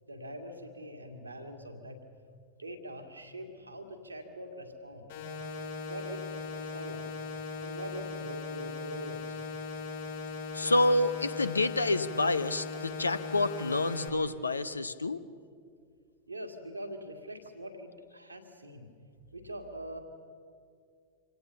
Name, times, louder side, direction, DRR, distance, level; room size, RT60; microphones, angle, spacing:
voice 1, 0.1-2.0 2.6-5.2 5.9-7.0 7.6-9.5 16.3-18.9 19.3-20.0, equal, 85° right, 3 dB, 2.1 m, -43 dB
sound 1, 5.1-14.1, left 4 dB, 55° left, 7.3 m, -39 dB
voice 2, 10.5-15.2, left 2 dB, 80° left, 14 dB, 0.7 m, -28 dB
26.0 x 17.5 x 6.9 m, 2.2 s
figure-of-eight pair, 90°, 0 cm